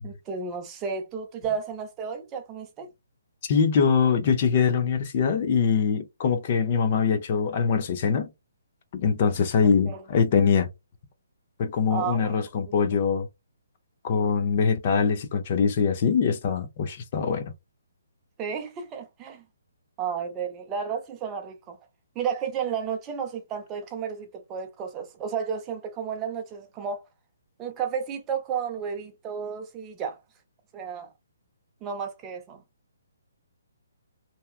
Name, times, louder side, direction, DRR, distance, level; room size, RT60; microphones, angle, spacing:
voice 1, 0.0-2.9 9.8-10.0 11.9-12.3 18.4-19.4 20.0-21.8 22.2-27.0 27.6-30.2 30.7-31.1 31.8-32.6, right 7 dB, 20° right, 0.5 m, -32 dB
voice 2, 3.5-8.3 8.9-10.7 11.6-13.3 14.0-17.5, left 6 dB, 40° left, 0.5 m, -23 dB
2.7 x 2.2 x 2.4 m
hypercardioid pair, 155°, 0 cm